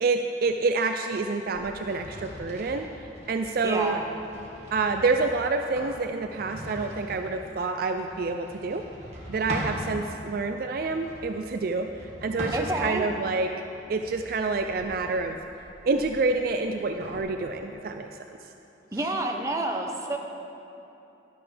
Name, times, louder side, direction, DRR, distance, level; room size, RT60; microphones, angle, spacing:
voice 1, 0.0-4.0 4.7-8.8 9.3-13.5 13.9-15.4 15.9-18.4, right 3 dB, 50° right, 6 dB, 0.3 m, -28 dB
sound 1, 1.5-9.8 10.6-13.1 13.6-17.2, equal, 35° right, 1.9 m, -41 dB
voice 2, 3.6-4.0 12.5-13.1 18.9-20.2, right 2 dB, 15° right, 1 dB, 0.8 m, -29 dB
12.0 x 11.5 x 3.4 m, 2.9 s
head